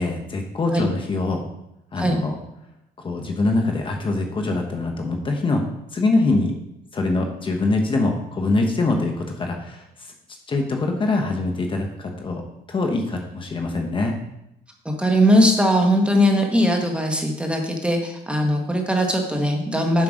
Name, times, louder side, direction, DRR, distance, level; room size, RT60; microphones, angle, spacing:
voice 1, 0.0-1.5 1.9-2.3 3.0-5.6 5.9-6.5 6.9-9.8 10.5-12.4 12.7-14.2, left 2 dB, 30° left, 2 dB, 1.1 m, -23 dB
voice 2, 14.8-20.0, equal, 5° right, 2 dB, 1.3 m, -20 dB
7.4 x 5.7 x 5.1 m, 0.85 s
cardioid pair, 110°, 17 cm